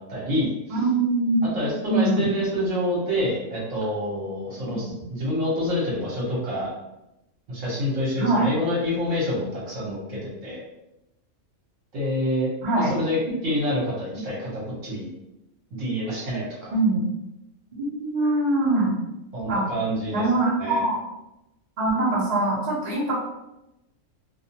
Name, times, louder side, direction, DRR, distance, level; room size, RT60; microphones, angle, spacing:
voice 1, 0.0-0.5 1.5-6.7 7.5-10.6 11.9-13.2 13.4-15.1 15.8-16.7 19.3-20.2 20.6-20.8, equal, 65° right, -5 dB, 1.2 m, -27 dB
voice 2, 0.7-1.5 1.9-2.3 4.7-4.9 8.2-8.5 12.6-12.9 16.7-17.0 17.7-18.9 19.5-19.7 20.1-21.0 21.8-23.2, right 2 dB, 35° right, -6 dB, 0.7 m, -23 dB
2.6 x 2.3 x 2.8 m, 0.90 s
omnidirectional pair, 1.5 m